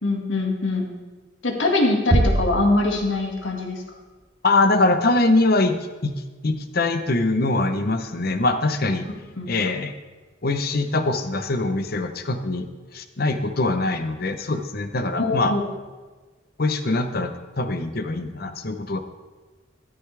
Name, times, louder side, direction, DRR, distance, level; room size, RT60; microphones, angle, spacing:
voice 1, 0.0-0.9 1.4-3.8 9.4-9.5 15.2-15.6, left 2 dB, 80° left, 1 dB, 2.1 m, -22 dB
sound 1, 2.1-3.7, right 1 dB, 25° right, 0.6 m, -23 dB
voice 2, 4.4-5.8 6.0-6.2 6.4-9.1 9.5-9.9 10.4-15.5 16.6-19.0, left 2 dB, 55° left, 8 dB, 0.9 m, -23 dB
13.0 x 13.0 x 3.4 m, 1.3 s
head